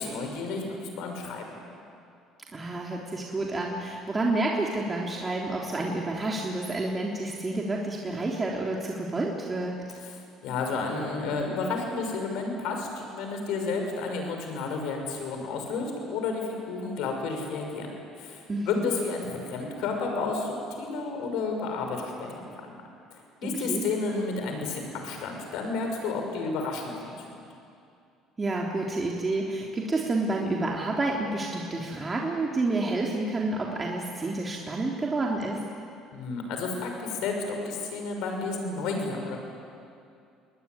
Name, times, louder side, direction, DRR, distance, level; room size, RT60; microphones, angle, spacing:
voice 1, 0.0-1.5 10.0-17.9 18.2-22.5 23.1-27.3 36.1-39.4, left 4 dB, 70° left, 3 dB, 6.2 m, -31 dB
voice 2, 2.5-9.8 18.5-18.9 23.4-23.8 28.4-35.6, right 2 dB, 25° right, -2 dB, 3.5 m, -29 dB
26.5 x 20.0 x 9.7 m, 2.5 s
hypercardioid pair, 70°, 0 cm